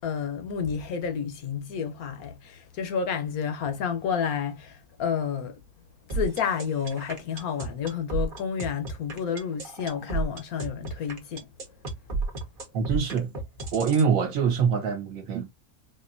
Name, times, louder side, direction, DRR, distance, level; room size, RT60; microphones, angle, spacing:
voice 1, 0.0-5.6 6.1-11.5, left 7 dB, 70° left, 1.1 m, -30 dB
sound 1, 6.1-14.1, right 3 dB, 40° right, 0.9 m, -32 dB
voice 2, 12.7-13.3 13.7-15.4, right 6 dB, 60° right, 1.2 m, -24 dB
4.3 x 2.6 x 2.5 m
omnidirectional pair, 1.7 m